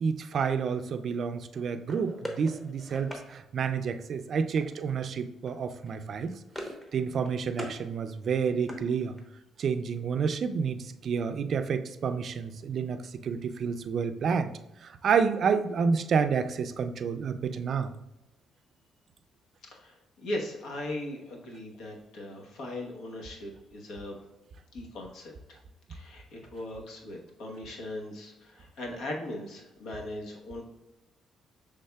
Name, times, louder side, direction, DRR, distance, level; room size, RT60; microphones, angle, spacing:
voice 1, 0.0-6.4 6.9-9.2 9.6-14.5 14.8-17.9, right 6 dB, 60° right, 9 dB, 0.3 m, -29 dB
sound 1, 1.9-3.3 4.6-5.0 5.3-5.5 5.8-6.9 7.2-7.8 8.2-9.4, equal, 15° left, 0.9 m, -42 dB
voice 2, 19.7-24.2 24.7-25.6 25.9-30.6, left 1 dB, 80° left, 0 dB, 1.0 m, -39 dB
6.5 x 3.4 x 2.2 m, 0.96 s
cardioid pair, 90°, 0 cm